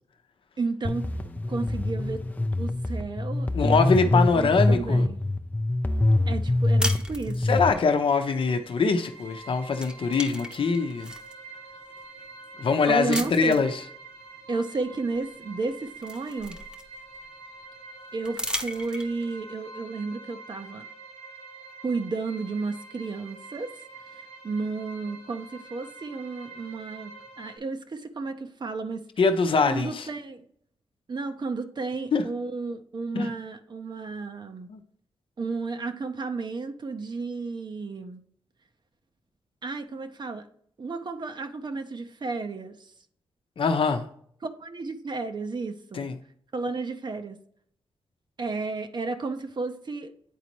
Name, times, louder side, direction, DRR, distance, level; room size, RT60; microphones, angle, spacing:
voice 1, 0.6-2.2 2.6-5.2 6.3-7.6 12.9-13.6 14.5-16.6 18.1-20.9 21.8-23.8 24.1-29.0 29.7-30.4 31.1-34.7 35.4-38.2 39.6-40.5 40.8-42.9 44.6-46.1 46.5-47.4 48.4-50.1, right 3 dB, 50° right, 0.8 m, -33 dB
sound 1, 0.8-7.7, left 2 dB, 15° left, 0.5 m, -25 dB
voice 2, 3.5-5.1 7.4-11.1 12.6-13.8 29.2-30.1 32.1-32.2 33.1-33.3 34.7-34.8 43.6-44.0 45.9-46.2, left 4 dB, 60° left, 0.8 m, -23 dB
sound 2, 6.8-7.8 9.2-9.4 9.7-11.3 12.0-12.1 13.1-13.7 15.1-15.2 15.6-17.2 18.2-19.3, equal, 10° right, 0.9 m, -35 dB
sound 3, 8.1-27.6, right 3 dB, 80° right, 2.3 m, -46 dB
9.3 x 4.1 x 3.0 m
cardioid pair, 70°, 10 cm